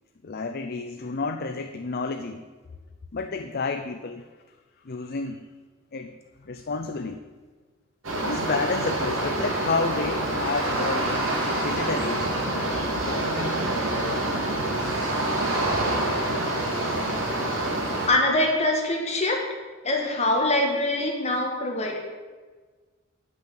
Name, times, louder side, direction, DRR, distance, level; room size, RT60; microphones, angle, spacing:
voice 1, 0.2-2.4 3.1-4.3 4.8-5.5 5.9-6.1 6.4-7.2 8.2-12.3 13.1-13.6, left 3 dB, 50° left, 6 dB, 0.6 m, -30 dB
sound 1, 8.0-18.1, right 1 dB, 80° right, 2.7 m, -26 dB
voice 2, 18.1-19.4 19.8-22.0, left 1 dB, 35° left, 1 dB, 1.7 m, -24 dB
10.5 x 6.2 x 7.5 m, 1.4 s
head